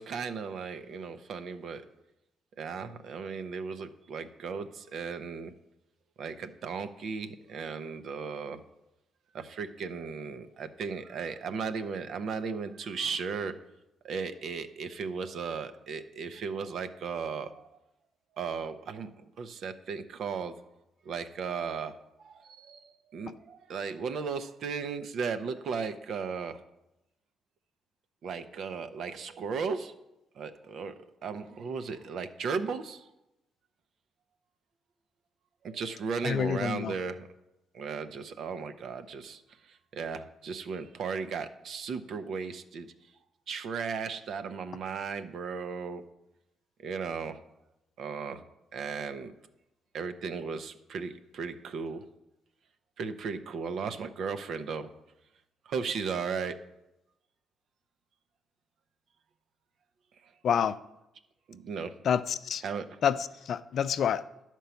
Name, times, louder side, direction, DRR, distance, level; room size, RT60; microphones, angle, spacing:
voice 1, 0.0-1.9 2.6-5.5 6.2-8.6 9.3-13.5 14.0-17.8 18.4-19.1 19.4-20.5 21.0-21.9 22.2-26.6 28.2-29.9 30.4-33.1 35.6-37.3 37.7-42.9 43.5-46.0 46.8-47.4 48.0-48.4 48.7-49.3 49.9-52.0 53.0-54.9 55.6-56.6 60.2-60.3 61.5-61.9 62.6-63.0, right 5 dB, 65° right, 9 dB, 0.6 m, -36 dB
voice 2, 36.2-36.9 60.4-60.7 62.1-62.6 63.0-63.2 63.5-64.2, left 8 dB, 60° left, 13 dB, 0.4 m, -27 dB
10.0 x 4.5 x 6.9 m, 0.90 s
cardioid pair, 90°, 0 cm